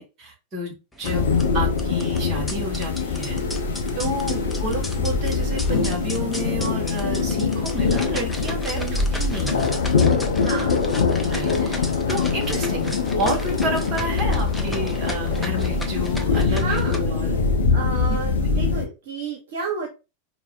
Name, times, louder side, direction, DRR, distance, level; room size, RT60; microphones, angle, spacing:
voice 1, 0.0-3.4 4.0-9.7 11.2-12.9 13.2-17.4 18.1-18.6, right 1 dB, 35° right, 1 dB, 1.2 m, -31 dB
sound 1, 0.9-17.0, left 1 dB, 5° left, 0.5 m, -37 dB
sound 2, 1.0-18.9, left 4 dB, 65° left, 0.5 m, -23 dB
voice 2, 4.3-4.6 8.8-9.0 10.4-10.8 16.5-17.0 17.7-19.9, right 4 dB, 60° right, 1 dB, 0.7 m, -31 dB
4.4 x 2.0 x 2.3 m, 0.28 s
figure-of-eight pair, 90°, 0 cm